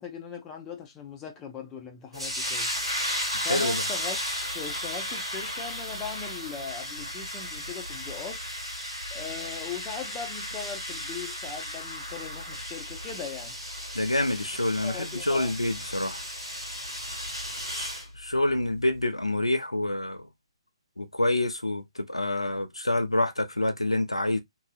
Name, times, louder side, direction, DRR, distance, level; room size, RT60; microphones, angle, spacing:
voice 1, 0.0-2.7 3.4-4.2 4.5-8.4 9.1-13.6 14.8-15.6, left 6 dB, 15° left, 0.7 m, -39 dB
sound 1, 2.1-18.1, equal, 90° right, 1.8 m, -34 dB
voice 2, 3.3-3.8 13.9-16.2 17.7-20.3 21.0-24.4, left 1 dB, 85° left, 0.5 m, -27 dB
3.1 x 2.7 x 2.3 m
figure-of-eight pair, 130°, 3 cm